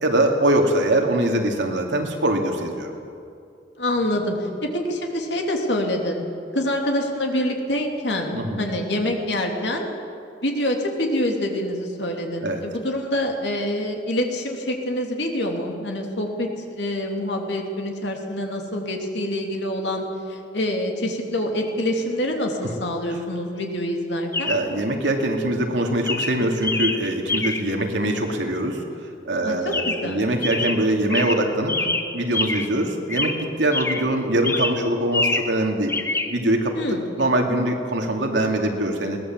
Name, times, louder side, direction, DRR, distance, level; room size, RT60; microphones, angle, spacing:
voice 1, 0.0-3.0 8.3-8.7 12.4-12.6 24.5-35.9 36.3-39.2, right 1 dB, 80° right, 2 dB, 2.6 m, -23 dB
voice 2, 3.8-6.2 6.5-9.9 10.4-24.5 29.4-30.3 36.7-37.0, left 1 dB, 70° left, 2 dB, 2.9 m, -26 dB
Chirp tweet, 21.6-21.7 24.3-24.7 25.5-25.7 26.1-27.8 29.7-30.2 30.4-32.8 33.1-34.1 34.4-35.6 35.9-36.3, left 3 dB, 15° left, 0.9 m, -26 dB
21.5 x 17.5 x 7.6 m, 2.5 s
head